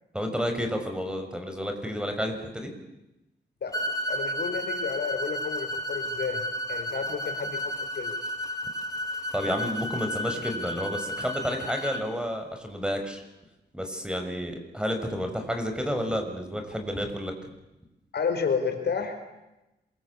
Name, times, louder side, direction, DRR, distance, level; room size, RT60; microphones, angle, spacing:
voice 1, 0.1-2.7 9.3-13.2 13.7-17.3, equal, 5° right, 5 dB, 6.2 m, -30 dB
voice 2, 3.6-6.4 6.7-7.6 7.9-8.1 10.3-10.5 18.1-19.2, left 5 dB, 70° left, 6 dB, 4.8 m, -31 dB
sound 1, 3.7-12.0, equal, 20° left, 3.9 m, -32 dB
27.0 x 23.0 x 8.5 m, 0.97 s
cardioid pair, 85°, 18 cm